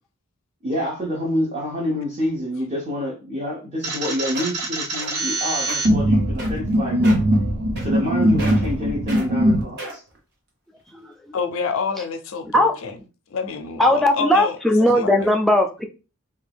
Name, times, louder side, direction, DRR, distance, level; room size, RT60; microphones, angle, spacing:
voice 1, 0.6-7.2 7.8-10.0, left 1 dB, 35° right, 0.7 m, -27 dB
sound 1, 3.8-9.6, equal, 85° right, 0.9 m, -21 dB
sound 2, 3.9-4.0 4.3-4.6 5.0-5.3 5.6-5.8 6.4-6.7 7.0-7.3 7.8-8.1 8.4-8.7 9.1-9.3 9.8-10.2 10.8-10.9, right 1 dB, 50° right, 1.1 m, -33 dB
voice 2, 11.3-13.0 13.3-14.6 14.9-15.3, left 5 dB, 65° left, 0.4 m, -28 dB
voice 3, 13.8-15.8, left 1 dB, ahead, 0.4 m, -18 dB
3.4 x 2.3 x 3.4 m
head